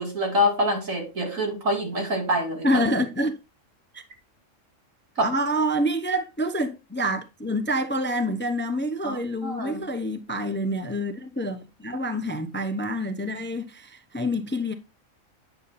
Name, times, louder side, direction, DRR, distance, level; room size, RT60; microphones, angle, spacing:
voice 1, 0.0-2.7 5.2-5.3 9.0-9.2 9.4-9.8, left 1 dB, 75° right, 3.0 m, -25 dB
voice 2, 2.6-3.4 3.9-4.0 5.2-14.7, equal, 10° left, 0.7 m, -27 dB
9.5 x 6.8 x 4.2 m
omnidirectional pair, 1.4 m